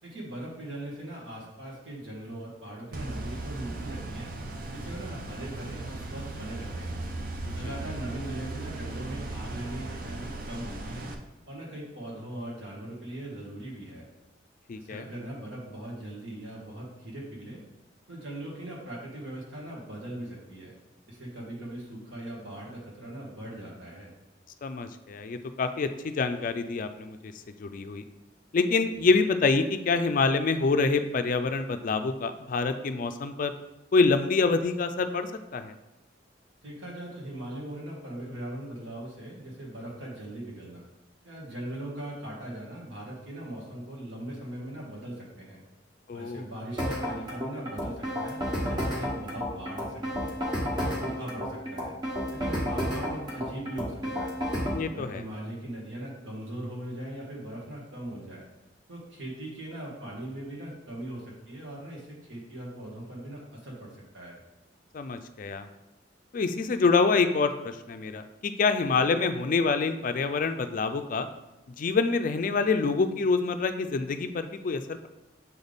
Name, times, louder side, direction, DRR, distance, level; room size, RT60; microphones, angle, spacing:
voice 1, 0.0-4.3 4.7-7.0 7.5-11.1 11.5-14.1 14.8-17.6 18.1-20.7 21.1-24.1 36.6-40.9 41.2-45.6 46.1-50.4 50.8-52.0 52.3-54.4 54.8-58.5 58.9-64.4, right 1 dB, 80° right, -3 dB, 1.8 m, -40 dB
sound 1, 2.9-11.1, right 2 dB, 50° right, 0.6 m, -37 dB
voice 2, 14.7-15.1 24.6-27.3 27.6-28.0 28.5-33.5 33.9-35.7 46.1-46.4 54.7-55.2 64.9-65.7 66.3-71.3 71.8-75.1, left 4 dB, 45° left, 9 dB, 0.4 m, -26 dB
sound 2, 46.8-54.8, equal, 25° right, 1.3 m, -31 dB
7.0 x 3.5 x 4.0 m, 0.98 s
head